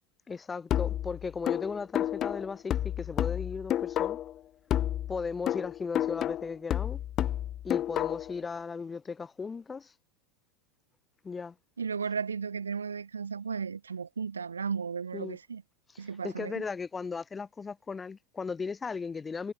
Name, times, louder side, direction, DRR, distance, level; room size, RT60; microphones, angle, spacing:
voice 1, 0.3-4.2 5.1-7.0 7.6-9.9 11.2-11.5 15.1-15.4 15.9-19.5, left 5 dB, 20° left, 4.0 m, -36 dB
sound 1, 0.7-4.4 4.7-8.4, left 11 dB, 35° left, 1.1 m, -31 dB
voice 2, 11.8-15.6 16.0-16.6, right 6 dB, 80° right, 6.0 m, -35 dB
figure-of-eight pair, 85°, 0 cm